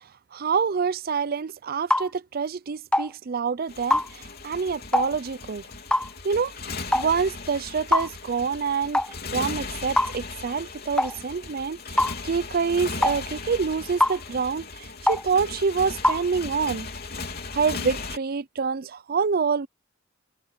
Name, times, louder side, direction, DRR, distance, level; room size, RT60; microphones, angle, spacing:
voice 1, 0.3-5.6 6.2-6.5 6.9-9.0 9.3-16.9 17.5-19.7, right 5 dB, 50° right, 0.5 m, -27 dB
sound 1, 1.9-2.1 2.9-3.1 3.9-4.1 4.9-5.1 5.9-6.1 6.9-7.1 7.9-8.1 8.9-9.1 10.0-10.2 11.0-11.1 12.0-12.1 13.0-13.2 14.0-14.2 15.1-15.2 16.0-16.2, left 1 dB, 5° left, 0.5 m, -22 dB
Motorcycle, 3.7-18.2, left 4 dB, 55° left, 3.4 m, -37 dB
head